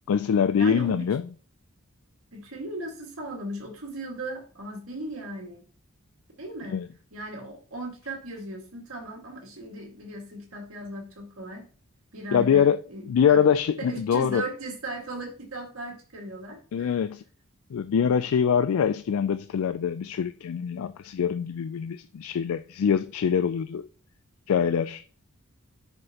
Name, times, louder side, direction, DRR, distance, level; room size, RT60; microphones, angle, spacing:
voice 1, 0.1-1.2 6.7-6.9 12.3-12.8 13.1-14.4 16.7-17.2 17.7-23.9 24.5-25.0, left 7 dB, 75° left, 0.3 m, -24 dB
voice 2, 0.6-1.1 2.3-5.6 6.4-6.8 7.1-11.6 12.1-13.4 13.8-16.9, right 2 dB, 70° right, 1.9 m, -37 dB
7.7 x 5.9 x 2.9 m
head